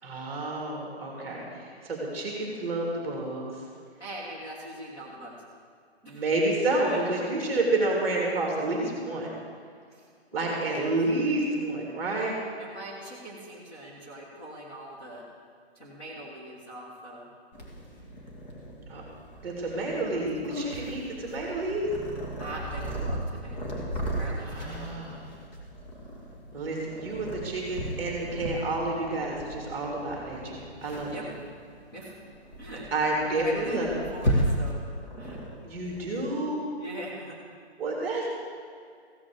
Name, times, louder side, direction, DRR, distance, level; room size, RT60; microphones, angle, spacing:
voice 1, 0.0-3.6 6.1-9.3 10.3-12.4 18.9-19.0 19.4-21.9 24.4-25.2 26.5-31.2 32.9-33.9 35.6-36.6 37.8-38.3, right 2 dB, 5° right, -2 dB, 2.3 m, -29 dB
voice 2, 4.0-5.3 6.0-6.2 6.8-7.0 7.5-7.6 9.9-10.1 10.4-10.5 12.6-15.2 15.7-17.3 19.7-20.2 22.4-25.3 31.1-31.2 31.9-32.2 32.6-32.8 33.2-34.8 35.2-35.4 36.7-37.4, right 1 dB, 20° left, -6 dB, 1.6 m, -42 dB
Purr, 17.5-36.2, equal, 45° left, 2.6 m, -35 dB
15.5 x 6.1 x 7.6 m, 2.2 s
hypercardioid pair, 175°, 33 cm